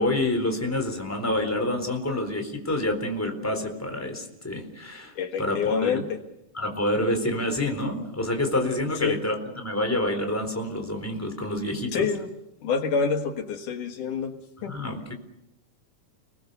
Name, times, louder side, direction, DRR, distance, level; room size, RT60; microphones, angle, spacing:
voice 1, 0.0-6.0 6.5-12.1 14.7-15.1, left 1 dB, 5° left, 4 dB, 3.7 m, -28 dB
voice 2, 5.2-6.2 9.0-9.2 11.9-12.3 12.6-14.8, left 5 dB, 75° left, 5 dB, 3.1 m, -27 dB
30.0 x 21.0 x 6.9 m, 0.86 s
omnidirectional pair, 3.7 m